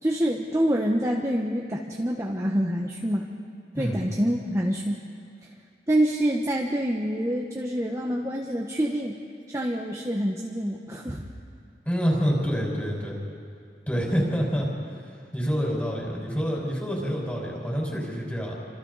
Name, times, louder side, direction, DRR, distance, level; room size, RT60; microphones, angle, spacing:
voice 1, 0.0-3.3 3.8-5.0 5.9-9.2 9.5-11.3, equal, 15° right, -1 dB, 1.1 m, -26 dB
voice 2, 11.9-13.2 13.9-14.7 15.3-18.6, equal, 10° left, -3 dB, 5.2 m, -27 dB
29.5 x 26.5 x 4.1 m, 2.3 s
head